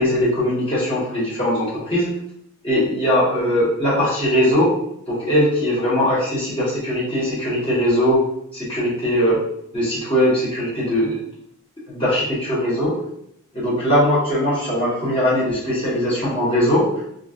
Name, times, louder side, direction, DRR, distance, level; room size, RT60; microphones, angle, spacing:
voice 1, 0.0-2.1 2.6-4.7 5.1-8.2 8.5-9.4 9.7-11.2 11.9-13.0 13.5-16.9, equal, 25° left, -7 dB, 1.2 m, -20 dB
3.0 x 2.4 x 2.5 m, 0.74 s
head